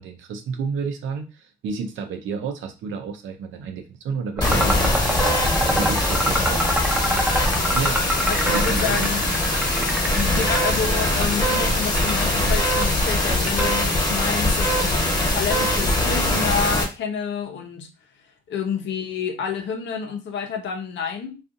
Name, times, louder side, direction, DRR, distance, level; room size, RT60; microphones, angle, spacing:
voice 1, 0.0-5.5 5.7-6.7 7.7-8.0 8.5-9.1 9.8-9.9, right 5 dB, 75° right, 0.6 m, -31 dB
sound 1, 4.4-16.8, left 1 dB, 20° left, 1.0 m, -22 dB
sound 2, 4.4-14.1, equal, 10° right, 0.6 m, -26 dB
voice 2, 8.3-9.2 10.1-17.9 18.5-21.4, left 6 dB, 65° left, 0.7 m, -29 dB
2.5 x 2.4 x 2.5 m
cardioid pair, 90°, 20 cm